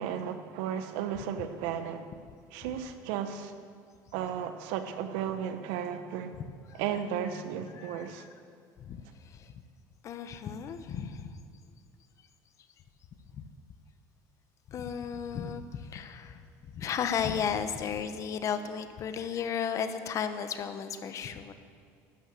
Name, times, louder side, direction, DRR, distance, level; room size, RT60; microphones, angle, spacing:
voice 1, 0.0-2.1 2.5-3.5 4.1-6.3 6.7-8.3, right 8 dB, 90° right, 1.2 m, -34 dB
voice 2, 7.8-8.1 8.8-9.0 9.3-9.5 10.0-11.3 13.4-13.5 14.7-16.4 16.7-21.5, left 7 dB, 45° left, 1.1 m, -34 dB
13.0 x 11.5 x 7.7 m
cardioid pair, 130°, 8 cm